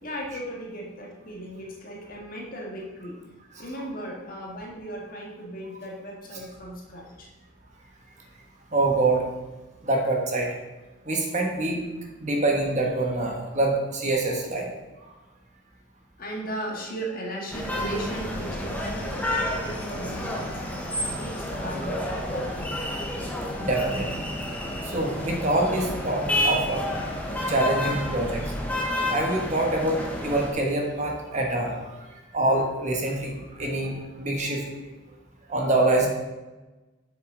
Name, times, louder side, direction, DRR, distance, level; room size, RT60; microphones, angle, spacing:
voice 1, 0.0-3.2 3.6-7.3 16.2-20.6 21.0-22.7, right 1 dB, 45° left, -1 dB, 1.8 m, -36 dB
voice 2, 8.7-9.3 9.8-10.5 11.1-11.8 12.2-14.7 23.6-24.2 24.9-26.9 27.5-28.4 29.1-30.0 30.2-31.7 32.3-34.9 35.5-36.1, right 2 dB, 35° right, 0 dB, 1.2 m, -25 dB
sound 1, 17.5-30.5, left 1 dB, 10° left, 1.0 m, -30 dB
8.1 x 6.7 x 3.8 m, 1.1 s
head